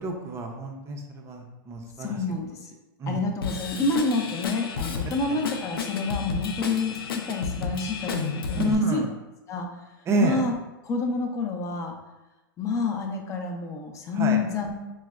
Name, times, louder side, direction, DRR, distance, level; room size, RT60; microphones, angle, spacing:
voice 1, 0.0-2.2 3.0-3.2 8.5-9.0 10.1-10.4 14.2-14.4, right 3 dB, 25° right, 3 dB, 0.5 m, -28 dB
voice 2, 2.0-2.7 3.1-9.0 9.5-9.7 10.2-10.5 10.8-11.9 12.6-14.7, left 4 dB, 25° left, 3 dB, 0.5 m, -28 dB
Drum kit / Drum, 3.4-8.7, left 6 dB, 85° left, 0.4 m, -32 dB
4.6 x 2.1 x 2.3 m, 1.0 s
hypercardioid pair, 115°, 12 cm